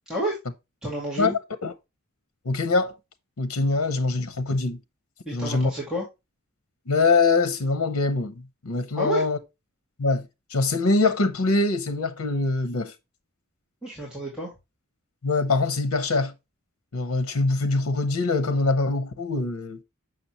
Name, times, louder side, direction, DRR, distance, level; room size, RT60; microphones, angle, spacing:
voice 1, 0.1-0.4 0.8-1.4 5.3-6.1 8.9-9.2 13.8-14.5, right 1 dB, 5° right, 2.0 m, -29 dB
voice 2, 2.4-3.0 3.4-4.8 5.3-5.7 6.9-9.4 10.0-12.9 15.2-16.3 16.9-19.8, left 3 dB, 80° left, 0.8 m, -23 dB
6.7 x 6.0 x 2.9 m
head